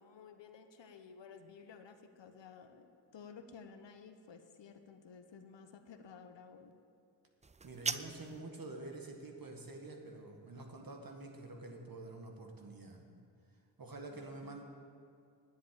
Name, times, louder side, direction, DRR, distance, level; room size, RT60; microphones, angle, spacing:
voice 1, 0.0-6.7 14.1-14.6, left 6 dB, 65° left, 7 dB, 1.1 m, -54 dB
sound 1, 7.4-8.4, right 4 dB, 15° right, 0.4 m, -39 dB
voice 2, 7.6-13.1 13.8-14.6, right 2 dB, 45° right, 2 dB, 2.0 m, -48 dB
9.7 x 8.3 x 8.8 m, 2.5 s
cardioid pair, 50°, 47 cm